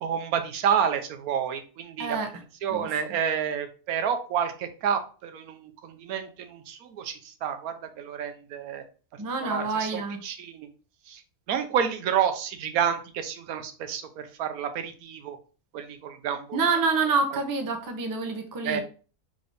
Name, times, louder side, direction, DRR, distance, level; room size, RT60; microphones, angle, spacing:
voice 1, 0.0-2.2 2.6-8.8 9.4-10.7 11.1-11.2 11.5-15.4 15.7-16.6 18.6-18.8, right 8 dB, 85° right, 8 dB, 1.1 m, -29 dB
voice 2, 2.0-2.3 2.7-2.9 9.2-10.2 16.5-18.8, right 4 dB, 30° right, 5 dB, 0.4 m, -27 dB
3.8 x 3.4 x 3.9 m, 0.38 s
omnidirectional pair, 1.5 m